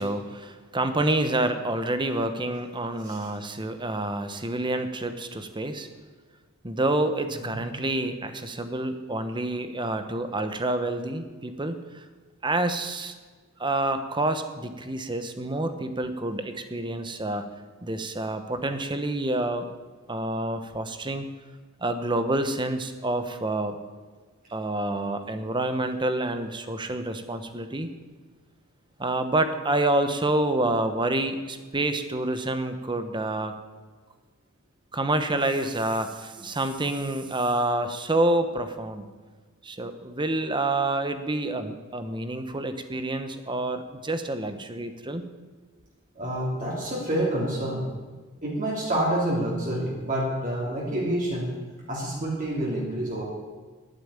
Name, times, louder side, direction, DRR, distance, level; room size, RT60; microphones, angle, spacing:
voice 1, 0.0-5.9 6.6-12.1 12.4-13.1 13.6-17.5 17.8-19.7 20.1-21.3 21.8-23.8 24.5-27.9 29.0-33.5 34.9-39.0 39.6-45.3, right 2 dB, 20° right, 9 dB, 1.0 m, -28 dB
voice 2, 46.1-47.9 48.4-51.5 51.9-53.2, right 1 dB, 40° right, -5 dB, 3.0 m, -28 dB
11.0 x 9.3 x 8.8 m, 1.4 s
head